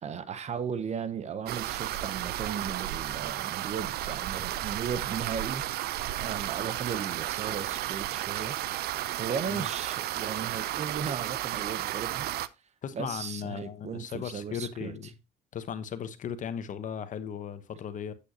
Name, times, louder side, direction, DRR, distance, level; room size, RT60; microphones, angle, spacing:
voice 1, 0.0-5.6 6.1-8.5 9.2-12.3 12.9-15.0, right 7 dB, 40° right, 0.8 m, -36 dB
sound 1, 1.5-12.5, right 14 dB, 70° right, 0.5 m, -33 dB
voice 2, 12.8-15.1 15.5-18.1, left 8 dB, 50° left, 1.0 m, -37 dB
8.4 x 7.9 x 2.8 m
cardioid pair, 110°, 17 cm